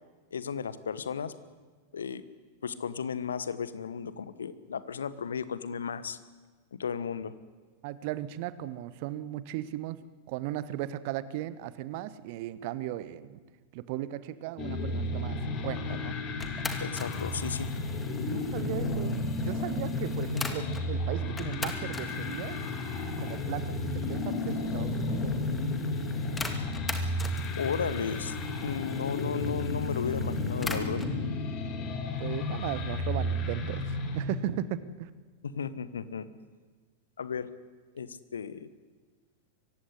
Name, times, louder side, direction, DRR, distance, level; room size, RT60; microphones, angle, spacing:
voice 1, 0.3-1.3 1.9-2.2 2.6-6.2 6.7-7.3 16.8-17.7 27.6-31.0 35.5-36.3 37.2-37.5 37.9-38.7, left 6 dB, 70° left, 15 dB, 1.2 m, -34 dB
voice 2, 7.8-13.4 13.7-16.2 18.2-22.6 23.2-25.4 32.2-33.8 34.1-35.1, right 13 dB, 45° right, 16 dB, 1.1 m, -37 dB
sound 1, 14.6-34.2, left 2 dB, 35° left, 3.3 m, -32 dB
sound 2, 16.4-20.9 21.4-31.2, left 3 dB, 10° left, 2.3 m, -43 dB
23.5 x 16.0 x 9.9 m, 1.4 s
figure-of-eight pair, 90°, 0 cm